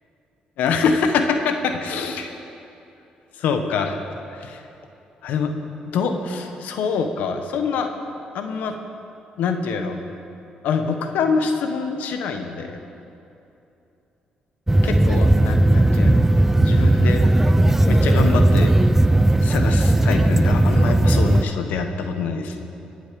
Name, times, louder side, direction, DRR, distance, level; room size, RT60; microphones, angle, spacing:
voice 1, 0.6-2.3 3.4-4.0 4.3-4.6 5.2-5.5 5.8-7.9 8.3-8.7 9.4-10.0 10.6-12.8 14.8-16.2 16.6-17.2 17.8-18.7 19.4-22.7, left 5 dB, 85° left, 6 dB, 1.1 m, -25 dB
sound 1, 14.7-21.4, right 1 dB, 10° right, 0.4 m, -16 dB
23.5 x 8.0 x 5.2 m, 2.8 s
cardioid pair, 90°, 3 cm